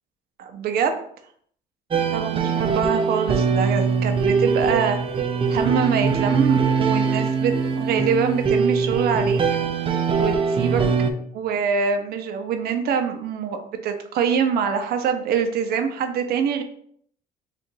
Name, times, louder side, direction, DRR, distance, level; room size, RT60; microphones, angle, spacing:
voice 1, 0.4-1.1 2.1-5.0 5.5-9.4 10.2-16.6, right 6 dB, 65° right, 6 dB, 0.7 m, -24 dB
sound 1, 1.9-11.1, right 5 dB, 30° right, 0.5 m, -22 dB
3.8 x 2.5 x 4.5 m, 0.63 s
cardioid pair, 110°, 17 cm